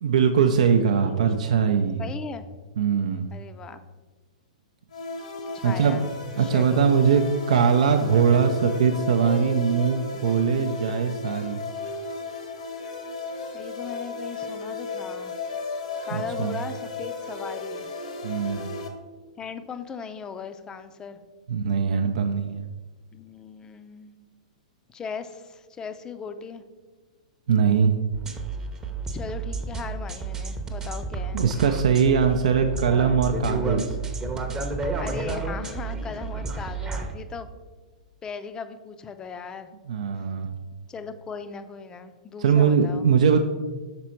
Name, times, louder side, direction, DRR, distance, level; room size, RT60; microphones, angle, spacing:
voice 1, 0.0-2.1 2.8-3.3 5.6-6.0 6.4-11.6 16.1-16.6 18.2-18.7 21.5-22.6 27.5-27.9 31.3-34.0 39.9-40.5 42.4-43.4, right 6 dB, 70° right, 5 dB, 0.5 m, -21 dB
voice 2, 2.0-2.4 3.3-3.8 5.5-6.1 6.4-6.8 13.5-15.3 16.0-17.9 19.4-21.2 23.1-24.2 24.9-26.6 29.1-31.4 35.0-37.5 38.2-39.7 40.9-43.1, left 6 dB, 20° left, 10 dB, 0.4 m, -38 dB
sound 1, 4.9-18.9, left 3 dB, 75° left, 1.0 m, -34 dB
sound 2, 28.1-37.1, right 3 dB, 15° right, 0.7 m, -31 dB
6.0 x 4.2 x 4.4 m, 1.3 s
hypercardioid pair, 110°, 4 cm